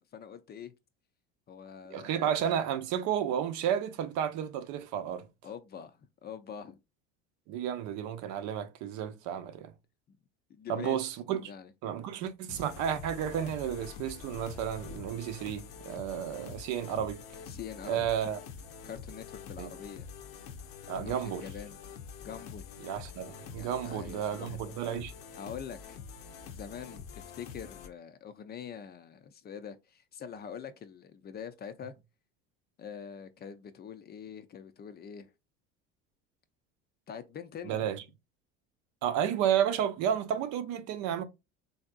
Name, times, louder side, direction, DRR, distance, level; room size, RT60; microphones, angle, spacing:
voice 1, 0.1-0.7 1.5-2.3 5.4-6.8 10.5-11.7 17.5-18.1 18.8-20.1 20.9-21.8 22.2-22.7 23.6-24.7 25.3-26.0 26.5-31.9 32.8-35.3 37.1-37.8, left 7 dB, 30° left, 0.4 m, -44 dB
voice 2, 1.9-5.3 7.5-9.7 10.7-11.5 11.8-17.2 17.8-18.4 19.6-19.7 20.9-21.4 22.8-25.1 37.6-38.0 39.0-41.2, right 9 dB, 65° right, 0.6 m, -32 dB
sound 1, 12.5-27.9, left 6 dB, 70° left, 0.7 m, -46 dB
3.4 x 2.6 x 2.4 m
supercardioid pair, 85°, 31 cm